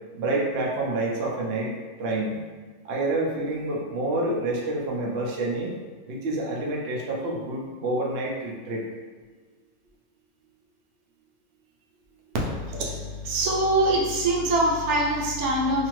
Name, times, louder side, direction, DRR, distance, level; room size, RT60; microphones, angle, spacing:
voice 1, 0.2-1.7 2.0-2.4 2.8-5.7 6.1-8.8 13.5-13.6, right 2 dB, 60° right, -2 dB, 0.7 m, -28 dB
voice 2, 12.5-15.9, right 1 dB, 80° right, -2 dB, 1.1 m, -24 dB
2.7 x 2.5 x 3.0 m, 1.5 s
omnidirectional pair, 1.6 m